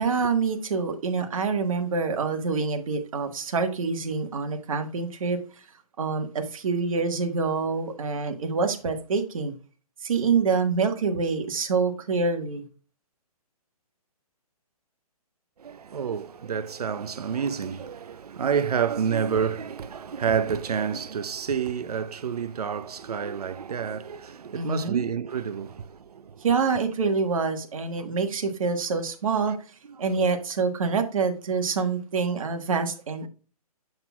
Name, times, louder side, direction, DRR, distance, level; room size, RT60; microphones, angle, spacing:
voice 1, 0.0-5.6 6.0-9.5 10.0-12.7 24.5-25.1 26.4-29.5 30.0-33.3, right 5 dB, 60° right, 1.4 m, -26 dB
voice 2, 15.6-26.4, right 7 dB, 75° right, 0.6 m, -29 dB
7.3 x 6.6 x 2.3 m
hypercardioid pair, 140°, 20 cm